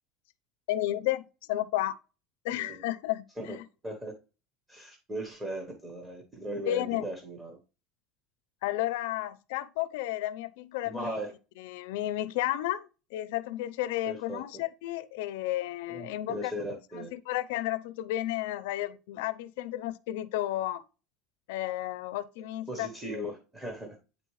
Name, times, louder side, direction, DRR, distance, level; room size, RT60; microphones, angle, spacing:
voice 1, 0.7-2.0 2.4-3.6 6.6-7.0 8.6-11.1 11.6-16.5 16.9-20.8 21.5-23.2, left 14 dB, 85° left, 0.6 m, -32 dB
voice 2, 2.5-2.8 3.4-3.6 3.8-4.1 4.7-7.6 10.8-11.3 14.0-14.4 15.9-17.1 22.7-24.0, right 1 dB, 10° right, 1.0 m, -38 dB
9.0 x 4.2 x 3.1 m
cardioid pair, 170°, 0 cm